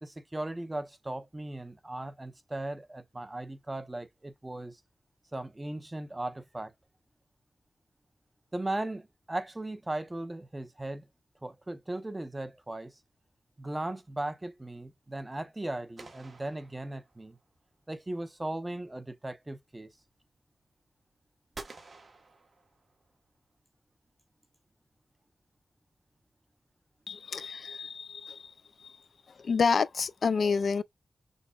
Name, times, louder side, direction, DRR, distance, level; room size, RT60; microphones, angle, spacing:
voice 1, 0.0-4.8 5.3-6.7 8.5-11.1 11.4-12.9 13.6-17.4 17.9-19.9, right 1 dB, 20° right, 0.7 m, -37 dB
sound 1, 16.0-17.4 21.5-23.1, right 3 dB, 50° right, 1.3 m, -49 dB
voice 2, 27.1-29.0 29.4-30.8, left 5 dB, 70° left, 0.3 m, -29 dB
6.3 x 2.2 x 2.4 m
wide cardioid pair, 105°, 0 cm